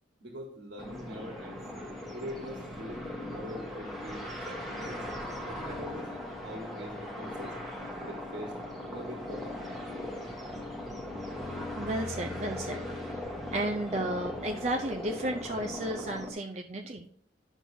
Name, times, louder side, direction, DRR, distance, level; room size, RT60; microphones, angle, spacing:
voice 1, 0.2-1.7 2.1-5.0 5.4-6.2 6.4-7.5 8.0-8.5 8.9-9.9, equal, 80° right, 1 dB, 1.5 m, -43 dB
sound 1, 0.8-16.3, left 1 dB, ahead, 1.1 m, -39 dB
voice 2, 11.8-13.2 13.5-17.1, right 1 dB, 35° right, 3 dB, 0.5 m, -33 dB
10.5 x 6.0 x 2.7 m, 0.65 s
head